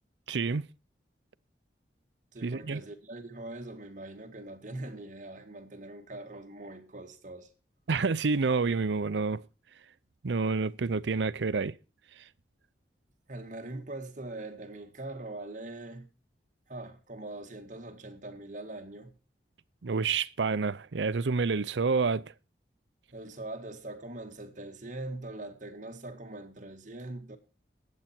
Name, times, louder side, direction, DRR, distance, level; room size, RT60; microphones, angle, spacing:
voice 1, 0.3-0.7 2.4-2.8 7.9-9.4 10.2-11.8 19.8-22.2, right 4 dB, 85° right, 0.6 m, -28 dB
voice 2, 2.3-7.5 13.3-16.1 16.7-19.1 23.1-27.4, right 2 dB, 45° right, 1.9 m, -42 dB
20.0 x 8.5 x 4.5 m
head